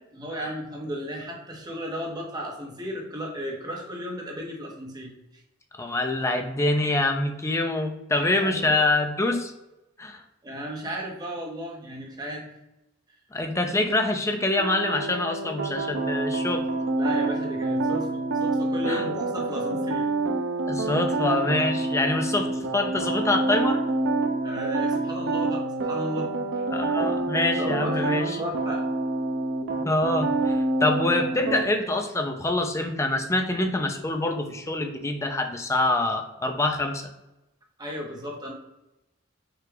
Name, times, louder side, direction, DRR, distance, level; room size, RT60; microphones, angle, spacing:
voice 1, 0.1-5.4 8.2-8.8 10.4-12.5 16.9-20.1 24.4-26.6 27.6-28.9 29.7-29.9 37.8-38.5, equal, 20° right, 0 dB, 1.0 m, -35 dB
voice 2, 5.7-9.5 10.0-10.2 13.3-16.7 18.9-19.0 20.7-23.8 26.7-28.4 29.8-37.0, left 2 dB, 15° left, 4 dB, 0.5 m, -25 dB
sound 1, 14.6-31.6, right 2 dB, 65° right, 0.5 m, -27 dB
5.5 x 2.4 x 3.8 m, 0.94 s
head